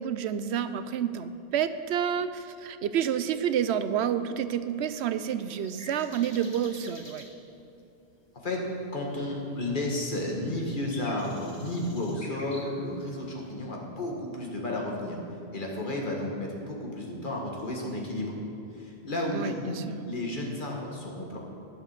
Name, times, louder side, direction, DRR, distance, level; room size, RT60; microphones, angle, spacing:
voice 1, 0.0-7.2 19.3-20.0, right 9 dB, 85° right, 12 dB, 0.8 m, -29 dB
sound 1, 3.2-3.5 4.7-7.3 8.9-9.0 9.3-9.6 9.9-12.7, left 1 dB, 25° left, 1.3 m, -48 dB
voice 2, 8.9-15.2 15.5-18.3 18.8-19.8 20.0-21.4, left 1 dB, 50° left, -1 dB, 1.8 m, -32 dB
11.0 x 7.0 x 6.5 m, 2.6 s
omnidirectional pair, 1.1 m